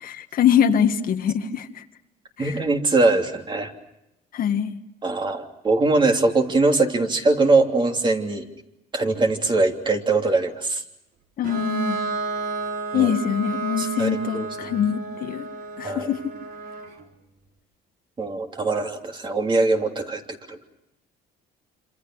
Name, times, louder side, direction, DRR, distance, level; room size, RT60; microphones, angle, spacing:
voice 1, 0.0-1.8 2.4-2.6 4.3-4.7 11.4-12.0 12.9-15.5 15.8-16.3, left 8 dB, 60° left, 1.8 m, -23 dB
voice 2, 2.4-3.7 5.0-8.5 8.9-10.8 12.9-13.2 13.8-14.7 15.8-16.1 18.2-20.7, right 3 dB, 30° right, 3.2 m, -22 dB
Bowed string instrument, 11.4-17.0, right 3 dB, 55° right, 4.5 m, -32 dB
27.5 x 27.0 x 6.3 m
cardioid pair, 110°, 17 cm